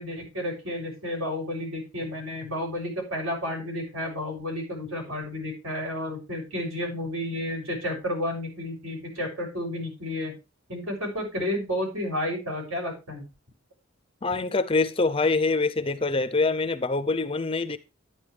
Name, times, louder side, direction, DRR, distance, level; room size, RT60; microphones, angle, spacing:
voice 1, 0.0-10.3 10.7-13.2, left 1 dB, 75° right, 6.6 m, -31 dB
voice 2, 14.2-17.8, left 3 dB, 25° left, 0.5 m, -25 dB
11.5 x 9.9 x 3.2 m
head